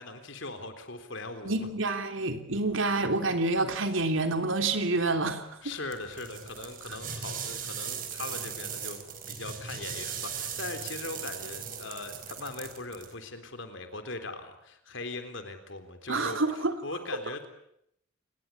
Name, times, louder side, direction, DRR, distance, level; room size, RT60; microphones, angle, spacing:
voice 1, 0.0-1.7 2.5-2.8 5.6-17.5, left 2 dB, 60° left, 8 dB, 3.8 m, -40 dB
voice 2, 1.4-5.7 16.1-16.7, right 2 dB, 70° right, 7 dB, 3.2 m, -28 dB
sound 1, 5.9-13.1, right 7 dB, 40° right, 4.5 m, -38 dB
28.5 x 20.5 x 8.6 m, 0.74 s
head